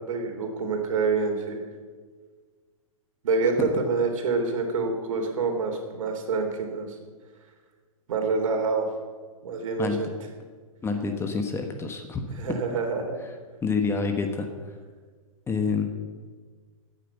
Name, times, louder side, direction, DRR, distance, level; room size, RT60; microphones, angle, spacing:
voice 1, 0.1-1.6 3.2-7.0 8.1-8.9 9.4-10.1 12.3-13.2, right 4 dB, 65° right, 4 dB, 3.3 m, -27 dB
voice 2, 10.8-12.3 13.6-14.5 15.5-15.9, left 4 dB, 15° left, 5 dB, 1.3 m, -27 dB
13.0 x 9.4 x 7.0 m, 1.5 s
hypercardioid pair, 130°, 18 cm